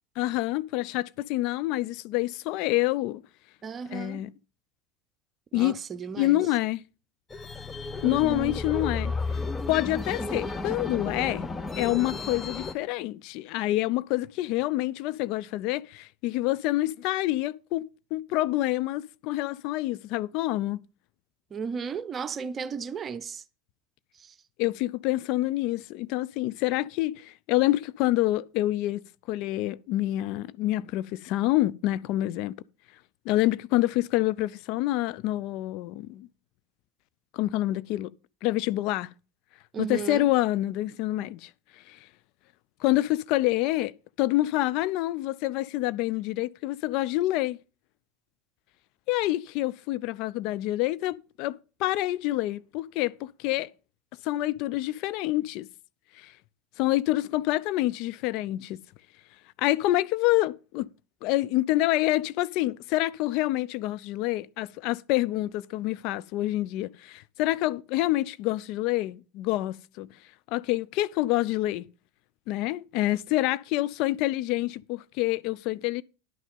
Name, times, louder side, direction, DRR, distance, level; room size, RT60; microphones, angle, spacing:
voice 1, 0.2-3.2 3.9-4.3 5.5-5.8 6.2-6.8 8.0-9.1 9.7-11.5 11.8-20.8 24.6-32.5 33.3-36.3 37.3-38.1 38.4-39.1 39.8-41.5 41.9-42.0 42.8-43.9 44.2-47.6 49.1-53.7 54.2-55.7 56.2-56.3 56.8-58.8 59.6-60.9 61.2-70.1 70.5-71.8 72.5-76.0, left 16 dB, 55° left, 0.5 m, -27 dB
voice 2, 3.6-4.2 5.5-6.4 8.0-8.6 21.5-23.4 24.2-24.3 39.7-40.3, right 5 dB, 30° right, 0.8 m, -34 dB
sound 1, 7.3-12.7, left 3 dB, 15° left, 0.9 m, -33 dB
11.0 x 6.3 x 5.3 m
hypercardioid pair, 75°, 0 cm